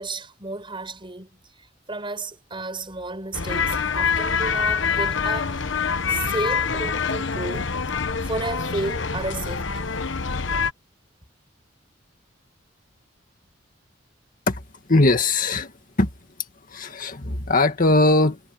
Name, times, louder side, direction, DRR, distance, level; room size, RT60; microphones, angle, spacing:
voice 1, 0.0-7.8 8.2-10.0, right 2 dB, 25° right, 6.0 m, -33 dB
sound 1, 3.3-10.7, left 5 dB, 75° left, 1.1 m, -25 dB
voice 2, 14.9-15.7 16.0-16.1 16.7-18.4, left 2 dB, 45° left, 1.9 m, -20 dB
head